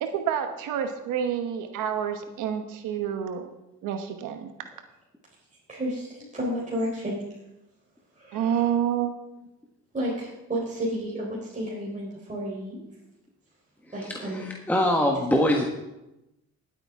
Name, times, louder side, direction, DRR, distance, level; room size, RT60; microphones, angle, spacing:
voice 1, 0.0-3.5 3.8-4.5 8.3-9.1 9.4-9.5, right 9 dB, 90° right, 6 dB, 1.1 m, -28 dB
voice 2, 5.7-7.2 8.2-8.7 9.9-12.8 13.9-14.5, equal, 25° right, -6 dB, 3.9 m, -32 dB
voice 3, 13.9-15.6, left 1 dB, 5° left, 0 dB, 1.4 m, -24 dB
18.0 x 8.8 x 3.6 m, 0.95 s
cardioid pair, 90°, 30 cm